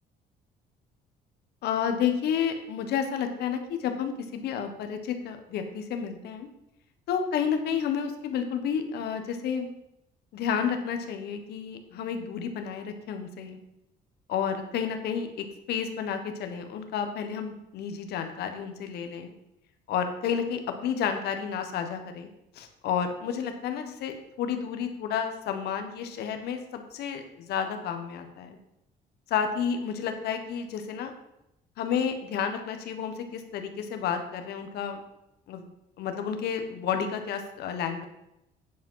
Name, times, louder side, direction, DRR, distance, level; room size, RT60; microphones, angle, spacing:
voice 1, 1.6-6.5 7.1-9.7 10.3-13.6 14.3-19.3 19.9-22.3 22.5-28.6 29.3-31.1 31.8-35.0 35.5-35.7 36.0-38.1, left 7 dB, 75° left, 7 dB, 1.4 m, -31 dB
10.0 x 5.0 x 5.7 m, 0.85 s
cardioid pair, 110°, 17 cm